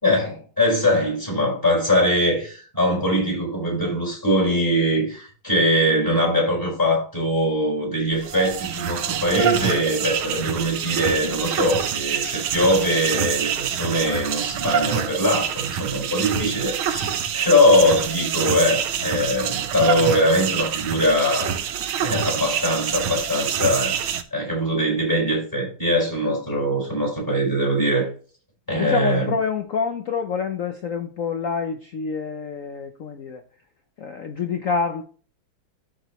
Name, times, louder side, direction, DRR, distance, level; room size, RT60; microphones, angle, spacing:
voice 1, 0.0-21.5 22.0-28.1 28.7-29.4, equal, 10° left, 4.6 m, -22 dB
sound 1, 8.1-24.2, right 9 dB, 80° right, 1.6 m, -26 dB
voice 2, 28.7-33.4 34.0-35.0, left 5 dB, 75° left, 0.7 m, -27 dB
12.5 x 5.0 x 3.1 m
omnidirectional pair, 2.3 m